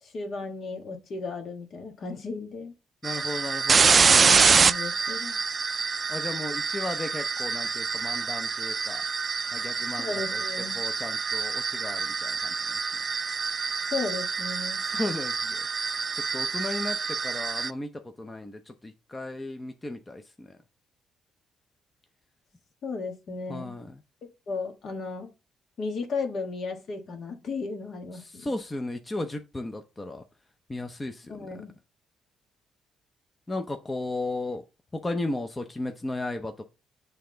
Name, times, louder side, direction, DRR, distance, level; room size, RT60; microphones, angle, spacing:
voice 1, 0.0-2.7 3.9-5.4 10.0-10.8 13.9-14.8 22.8-23.8 24.5-25.3 25.8-28.5 31.3-31.7, left 4 dB, 60° left, 1.5 m, -35 dB
voice 2, 3.0-4.0 6.1-9.0 9.5-12.8 14.8-20.6 23.5-24.0 28.1-30.2 30.7-31.5 33.5-34.6 34.9-36.7, left 2 dB, 20° left, 0.7 m, -35 dB
sound 1, 3.0-17.7, right 5 dB, 40° right, 0.3 m, -26 dB
7.4 x 3.4 x 3.8 m
cardioid pair, 90°, 0 cm